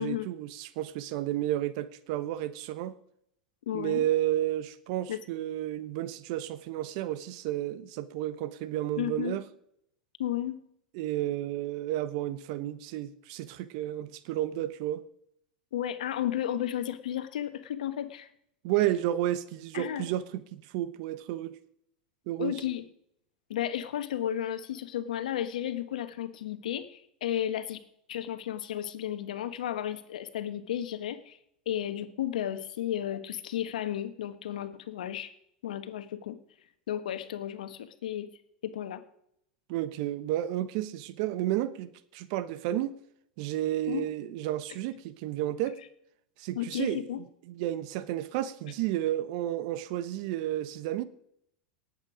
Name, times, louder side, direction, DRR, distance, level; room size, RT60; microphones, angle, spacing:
voice 1, 0.0-2.9 3.7-9.4 10.9-15.0 18.6-21.6 22.3-22.6 39.7-43.0 43.4-45.8 46.4-47.1 47.5-51.0, right 13 dB, 60° right, 1.0 m, -32 dB
voice 2, 3.7-4.0 5.1-5.2 9.0-9.4 10.2-10.6 15.7-18.3 19.7-20.1 22.4-22.8 23.5-27.8 28.1-31.4 31.6-35.3 35.6-36.4 36.9-38.3 38.6-39.0 43.8-44.0 46.5-47.2, left 11 dB, 75° left, 1.3 m, -33 dB
19.0 x 8.3 x 5.0 m
hypercardioid pair, 95°, 4 cm